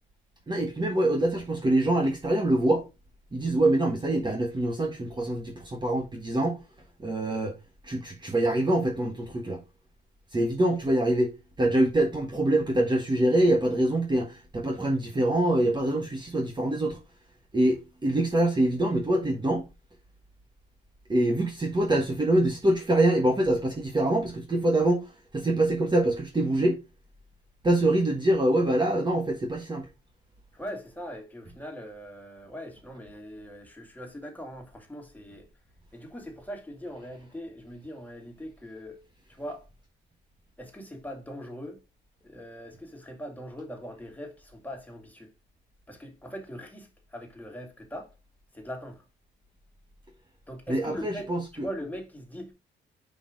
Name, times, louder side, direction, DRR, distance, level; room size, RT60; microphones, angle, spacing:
voice 1, 0.5-2.8 3.3-6.6 7.0-7.5 7.8-9.6 10.3-11.3 11.6-17.0 17.5-19.6 21.1-26.8 27.6-29.9 50.7-51.7, right 1 dB, 20° right, 1.3 m, -25 dB
voice 2, 30.5-35.5 35.9-39.0 39.3-39.7 40.6-41.8 42.2-45.3 45.9-48.1 48.5-49.0 50.5-52.5, equal, 10° left, 2.2 m, -41 dB
5.5 x 4.4 x 5.1 m
cardioid pair, 90°, 20 cm